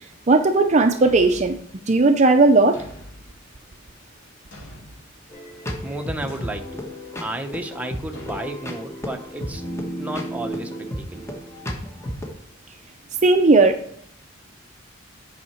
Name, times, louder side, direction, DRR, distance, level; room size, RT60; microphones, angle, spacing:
voice 1, 0.3-1.6 1.9-2.8 13.2-14.0, right 3 dB, 35° right, 6 dB, 0.5 m, -16 dB
Thump thud, 1.0-1.6 2.7-3.3 4.5-5.1 6.3-6.7 8.1-8.5, equal, 85° left, 2.5 m, -42 dB
sound 1, 5.3-12.3, equal, 15° left, 1.3 m, -33 dB
voice 2, 5.8-6.8 7.2-9.6 10.0-11.2, right 1 dB, 5° right, 3 dB, 0.8 m, -32 dB
9.5 x 5.7 x 4.4 m, 0.65 s
head